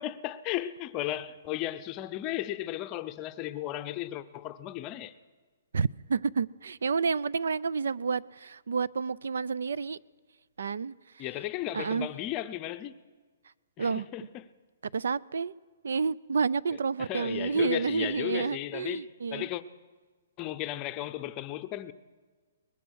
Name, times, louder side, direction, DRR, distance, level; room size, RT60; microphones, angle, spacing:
voice 1, 0.0-5.1 11.2-13.0 13.8-14.2 17.0-19.1 19.3-19.6 20.4-21.9, left 14 dB, 20° left, 0.6 m, -35 dB
voice 2, 5.7-10.0 10.6-11.3 11.7-12.1 13.8-14.1 14.9-15.5 15.8-19.5, right 5 dB, 90° right, 0.5 m, -30 dB
22.5 x 20.5 x 6.4 m
hypercardioid pair, 175°, 0 cm